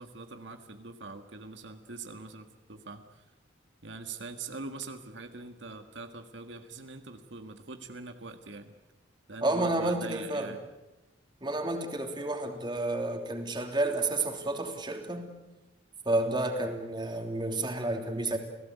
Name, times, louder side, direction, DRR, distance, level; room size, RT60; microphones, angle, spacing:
voice 1, 0.0-3.2 3.8-8.7 9.3-10.6 16.1-16.3, right 3 dB, 75° right, 6 dB, 1.7 m, -43 dB
voice 2, 9.4-10.5 11.4-15.3 16.0-18.4, right 2 dB, 25° right, 4 dB, 3.1 m, -30 dB
30.0 x 17.5 x 8.3 m, 1.0 s
head